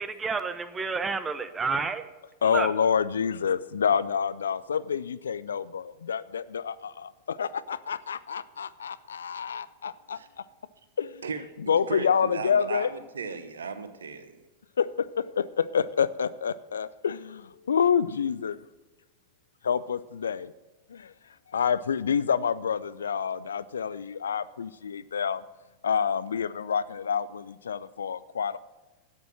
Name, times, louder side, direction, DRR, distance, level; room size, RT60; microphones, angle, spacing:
voice 1, 0.0-2.0 2.5-2.7, right 4 dB, 15° right, 12 dB, 0.8 m, -30 dB
voice 2, 2.4-10.2 11.0-11.2 11.6-12.9 14.8-18.5 19.6-20.5 20.9-21.1 21.5-25.4 25.8-28.6, left 7 dB, 70° left, 17 dB, 0.4 m, -28 dB
voice 3, 11.9-14.3, right 5 dB, 70° right, 11 dB, 1.0 m, -35 dB
13.0 x 8.0 x 6.2 m, 1.1 s
figure-of-eight pair, 90°, 0 cm